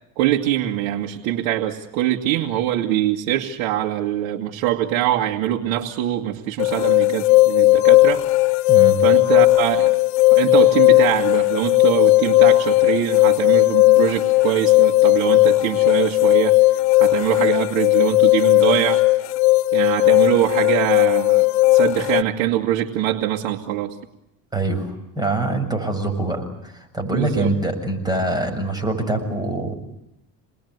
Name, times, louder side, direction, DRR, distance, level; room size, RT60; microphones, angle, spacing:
voice 1, 0.2-8.2 9.0-10.0 10.3-16.6 17.0-19.0 19.7-23.9 27.1-27.5, right 12 dB, 80° right, 0 dB, 2.2 m, -23 dB
sound 1, 6.6-22.2, left 19 dB, 85° left, 1.1 m, -16 dB
voice 2, 8.7-9.0 24.5-29.7, right 2 dB, 10° right, 3 dB, 7.3 m, -24 dB
28.5 x 21.0 x 9.6 m, 0.84 s
supercardioid pair, 110°, 42 cm